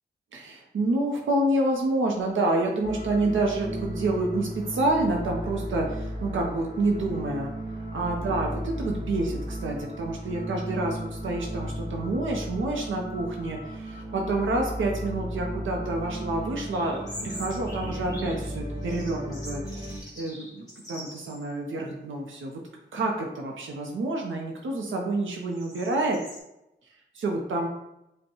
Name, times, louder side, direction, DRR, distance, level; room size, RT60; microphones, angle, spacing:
voice 1, 0.3-7.5 7.9-22.6 22.9-26.2 27.1-27.7, right 2 dB, 85° right, 0 dB, 0.6 m, -28 dB
sound 1, 2.8-20.0, equal, 25° right, 0.7 m, -35 dB
sound 2, 16.7-18.5 18.8-21.5 21.9-22.0 22.7-23.1 23.6-26.4, left 1 dB, 20° left, 1.3 m, -44 dB
5.2 x 2.1 x 2.9 m, 0.88 s
cardioid pair, 70°, 20 cm